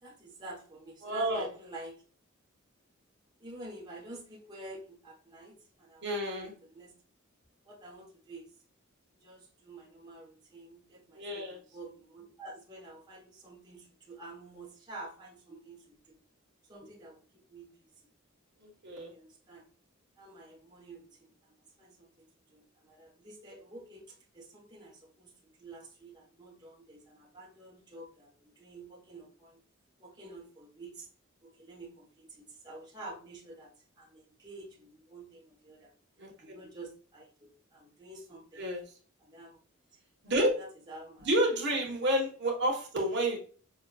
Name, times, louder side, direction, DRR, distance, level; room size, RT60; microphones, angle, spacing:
voice 1, 0.0-2.0 3.4-6.9 7.6-8.5 9.1-16.2 16.7-17.7 19.1-19.6 20.2-29.6 30.0-31.1 31.4-35.9 36.4-38.6 39.2-39.6 40.4-41.3, right 2 dB, 20° right, -4 dB, 1.1 m, -49 dB
voice 2, 1.0-1.5 6.0-6.5 11.1-11.6 18.6-19.1 36.2-36.3 38.6-38.8 40.2-40.5 41.2-43.4, right 1 dB, 55° right, 0 dB, 1.4 m, -30 dB
6.1 x 2.5 x 2.3 m, 0.41 s
head